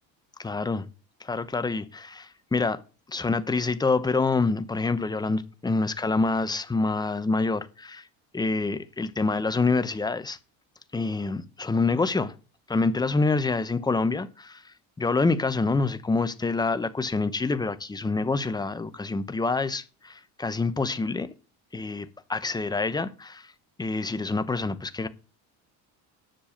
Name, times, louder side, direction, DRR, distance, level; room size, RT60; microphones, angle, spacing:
voice 1, 0.4-0.9 1.2-2.8 3.1-8.0 8.3-10.4 10.9-12.3 12.7-14.6 15.0-21.3 21.7-23.5 23.8-25.1, left 3 dB, 10° left, 0.9 m, -26 dB
10.0 x 7.0 x 6.5 m
cardioid pair, 115°, 35 cm